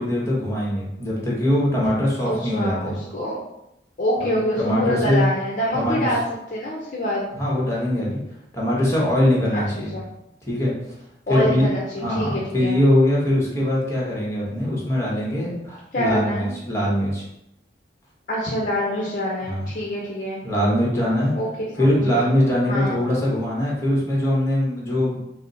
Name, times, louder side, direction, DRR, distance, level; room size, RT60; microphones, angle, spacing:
voice 1, 0.0-3.0 4.2-5.3 5.7-6.1 7.3-8.2 8.5-9.9 10.4-10.7 11.3-11.7 12.0-17.2 19.4-19.7 20.4-21.3 21.8-25.3, left 1 dB, 15° left, -5 dB, 1.1 m, -22 dB
voice 2, 2.2-3.4 4.0-6.2 6.5-7.3 9.5-9.6 9.9-10.0 11.3-12.8 15.9-16.5 18.3-20.4 21.3-21.5 22.0-22.2 22.7-23.0, equal, 45° left, -5 dB, 0.6 m, -25 dB
4.0 x 2.0 x 3.9 m, 0.83 s
head